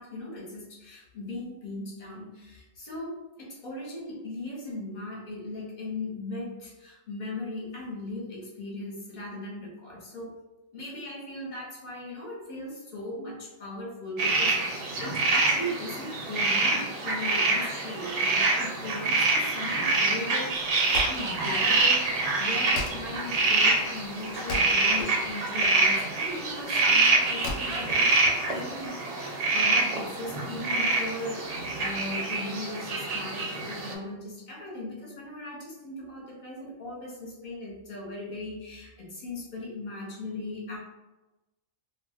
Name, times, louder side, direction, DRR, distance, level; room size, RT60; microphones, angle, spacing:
voice 1, 0.0-10.3 10.7-28.1 28.5-40.8, left 2 dB, 40° left, -4 dB, 0.9 m, -38 dB
sound 1, 14.2-33.9, right 3 dB, 65° right, 0.9 m, -26 dB
Wood, 20.5-28.9, left 2 dB, 80° left, 0.9 m, -39 dB
2.3 x 2.2 x 3.5 m, 1.0 s
omnidirectional pair, 1.4 m